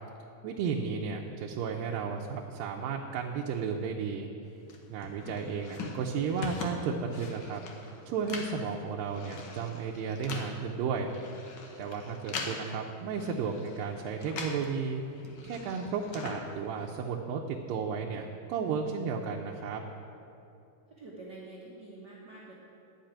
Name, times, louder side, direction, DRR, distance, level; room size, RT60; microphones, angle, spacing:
voice 1, 0.4-4.3 4.9-7.6 8.1-11.1 11.8-15.0 15.4-19.8, right 6 dB, 85° right, 0 dB, 2.4 m, -33 dB
sound 1, 4.7-14.7 15.0-17.1, left 4 dB, 80° left, 1.1 m, -42 dB
voice 2, 21.0-22.5, right 2 dB, 60° right, -6 dB, 1.1 m, -47 dB
12.0 x 5.8 x 8.8 m, 2.7 s
omnidirectional pair, 3.9 m